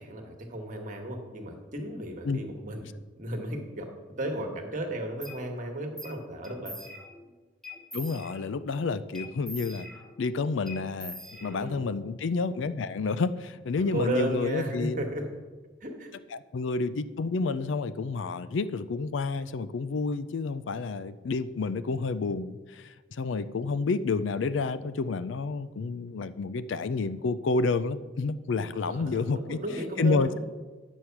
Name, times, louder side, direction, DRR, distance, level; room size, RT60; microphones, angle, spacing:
voice 1, 0.0-2.9 3.2-3.9 4.2-6.8 11.4-11.8 13.8-15.3 15.8-16.1 28.7-30.4, right 1 dB, 45° right, 3 dB, 1.4 m, -34 dB
sound 1, 5.2-5.4 6.0-6.2 6.4-7.3 7.6-8.6 9.1-10.3 10.7-11.9, left 1 dB, ahead, 1.2 m, -43 dB
voice 2, 7.9-9.9 10.2-15.0 16.3-29.6 30.0-30.4, left 4 dB, 70° left, 14 dB, 0.4 m, -29 dB
9.6 x 6.3 x 5.8 m, 1.3 s
head